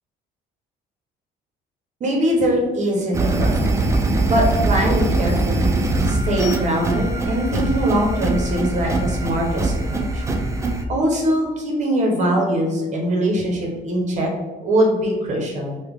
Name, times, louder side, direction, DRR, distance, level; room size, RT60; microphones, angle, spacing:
voice 1, 2.0-3.9 4.3-10.2 10.9-14.3 14.6-15.8, equal, 45° right, -1 dB, 0.8 m, -22 dB
sound 1, 3.1-10.8, right 2 dB, 15° right, 0.4 m, -21 dB
3.3 x 2.2 x 3.4 m, 1.2 s
cardioid pair, 110°, 17 cm